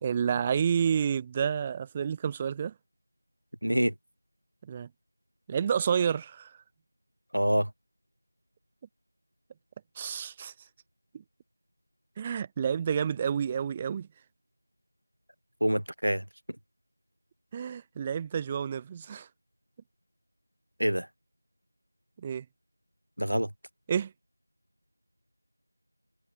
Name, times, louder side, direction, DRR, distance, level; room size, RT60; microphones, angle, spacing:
voice 1, 0.0-2.7 4.7-4.9 5.5-6.6 10.0-10.5 11.1-11.2 12.2-14.1 17.5-19.3 22.2-22.4 23.9-24.1, right 7 dB, 10° right, 0.9 m, -29 dB
voice 2, 3.6-3.9 7.3-7.7 15.6-16.2 20.8-21.1 23.2-23.5, equal, 75° right, 0.8 m, -26 dB
figure-of-eight pair, 175°, 0 cm